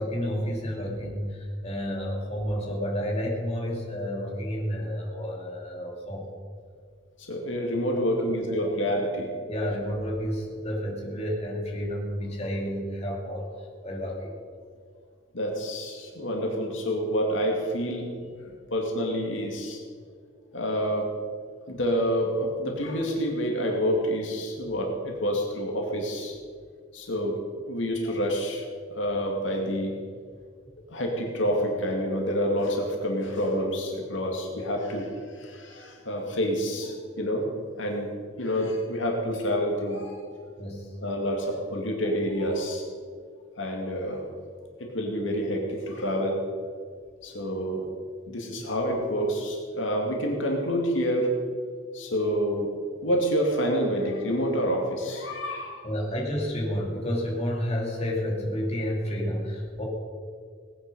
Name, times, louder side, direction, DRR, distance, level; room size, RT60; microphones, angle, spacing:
voice 1, 0.0-6.3 8.6-8.7 9.5-13.4 13.8-14.3 40.6-41.0 55.8-59.8, equal, 35° left, -2 dB, 2.9 m, -30 dB
voice 2, 7.3-9.3 15.3-18.1 18.7-19.8 20.5-21.1 21.7-26.4 26.9-27.4 27.7-28.6 28.9-29.9 30.9-37.5 37.8-40.3 41.0-42.8 43.6-44.3 44.8-46.4 47.2-47.8 48.3-51.3 51.9-52.7 53.0-55.9, equal, 80° left, 1 dB, 2.2 m, -28 dB
18.5 x 9.9 x 5.4 m, 2.1 s
head